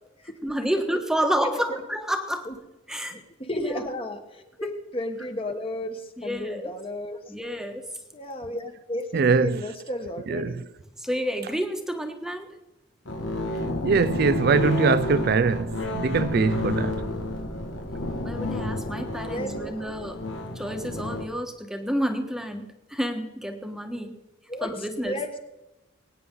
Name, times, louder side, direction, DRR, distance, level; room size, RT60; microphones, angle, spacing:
voice 1, 0.4-2.5 2.9-3.1 3.6-3.8 6.2-6.7 7.3-7.8 11.0-12.5 18.2-20.2 20.5-24.1 24.6-25.2, equal, 5° right, 1.2 m, -29 dB
voice 2, 1.4-1.8 2.4-2.5 3.1-7.3 8.1-10.6 14.4-14.5 19.3-19.9 24.5-25.4, left 1 dB, 30° left, 1.4 m, -34 dB
voice 3, 9.1-9.6 10.3-10.5 13.8-17.0, right 5 dB, 50° right, 0.4 m, -22 dB
sound 1, 13.0-21.2, left 2 dB, 85° left, 1.7 m, -30 dB
22.5 x 9.5 x 3.8 m
head